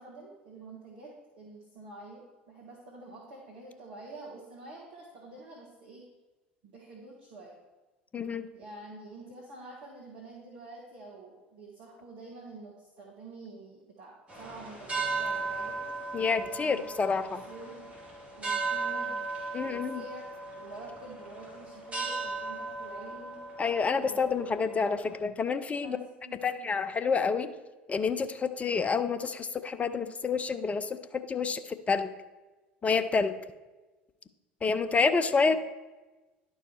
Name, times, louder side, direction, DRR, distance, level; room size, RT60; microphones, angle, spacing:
voice 1, 0.0-6.0 6.6-7.6 8.5-15.8 16.4-17.9 18.4-19.2 19.6-20.2 20.5-23.4 24.0-24.8 25.8-26.7 35.3-35.6, right 2 dB, 60° right, -3 dB, 1.5 m, -48 dB
voice 2, 8.1-8.5 16.1-17.4 19.5-20.0 23.6-26.0 26.4-27.5 27.9-32.1 32.8-33.3 34.6-35.6, left 5 dB, 25° left, 10 dB, 0.6 m, -28 dB
sound 1, 14.3-25.2, right 3 dB, 20° right, 2.7 m, -37 dB
11.0 x 4.7 x 4.5 m, 1.2 s
figure-of-eight pair, 65°, 6 cm